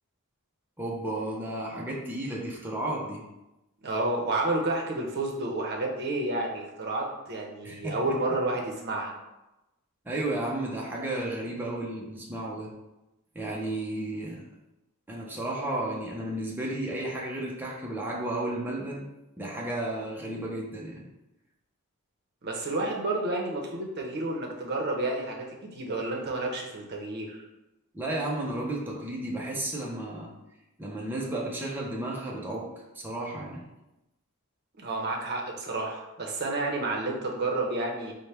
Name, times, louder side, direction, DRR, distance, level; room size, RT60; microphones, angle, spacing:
voice 1, 0.8-3.2 7.6-8.2 10.0-12.7 13.3-14.4 15.1-19.1 19.4-21.0 27.9-30.3 30.8-32.7 32.9-33.6, right 1 dB, 10° right, -4 dB, 0.5 m, -33 dB
voice 2, 3.8-9.1 22.4-27.4 34.8-38.1, right 2 dB, 50° right, 0 dB, 0.7 m, -30 dB
4.2 x 2.1 x 3.3 m, 0.96 s
head